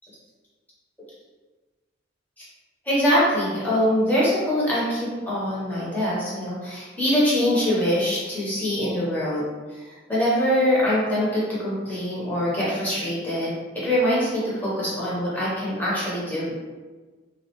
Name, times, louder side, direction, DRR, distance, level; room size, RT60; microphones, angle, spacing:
voice 1, 2.9-9.4 9.8-16.5, equal, 10° left, -8 dB, 0.8 m, -23 dB
2.3 x 2.1 x 2.8 m, 1.3 s
head